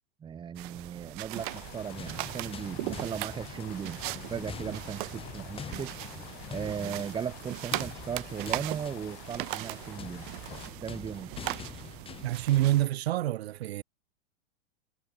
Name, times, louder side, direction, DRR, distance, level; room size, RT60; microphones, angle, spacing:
voice 1, 0.2-4.0 4.3-5.9 6.5-10.3 10.8-11.3, right 7 dB, 15° right, 1.9 m, -37 dB
sound 1, 0.5-12.9, right 23 dB, 45° right, 3.3 m, -39 dB
sound 2, 1.3-10.7, left 32 dB, 40° left, 5.4 m, -49 dB
sound 3, 1.5-12.9, left 8 dB, 15° left, 5.6 m, -45 dB
voice 2, 12.2-13.8, right 14 dB, 60° right, 4.7 m, -27 dB
supercardioid pair, 155°, 35 cm